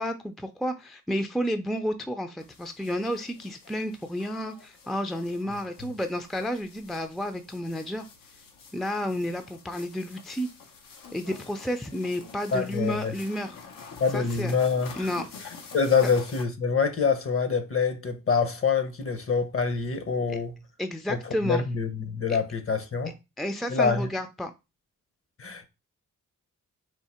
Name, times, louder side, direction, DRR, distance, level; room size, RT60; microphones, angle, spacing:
voice 1, 0.0-8.0 8.7-10.5 11.1-13.5 14.1-14.6 15.0-15.2 20.3-20.4 20.8-21.6 23.4-24.5, equal, ahead, 0.4 m, -31 dB
sound 1, 2.4-16.4, left 5 dB, 85° left, 0.9 m, -47 dB
voice 2, 12.5-13.1 14.0-15.1 15.7-20.5 21.1-21.2 21.4-23.1 23.7-24.1 25.4-25.7, left 5 dB, 45° left, 0.8 m, -25 dB
3.7 x 2.8 x 4.2 m
cardioid pair, 75°, 33 cm